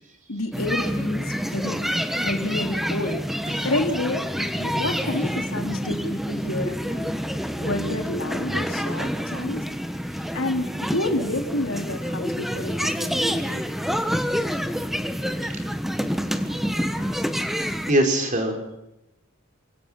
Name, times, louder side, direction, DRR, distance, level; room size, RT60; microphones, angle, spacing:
voice 1, 0.3-1.8 2.1-3.2 3.6-7.1 7.5-9.6 10.3-13.7, left 2 dB, 85° left, 4 dB, 2.9 m, -29 dB
sound 1, 0.5-17.9, equal, ahead, 1.3 m, -27 dB
voice 2, 16.3-17.1 17.9-18.6, right 1 dB, 40° right, 4 dB, 4.8 m, -24 dB
28.0 x 17.5 x 5.8 m, 0.92 s
head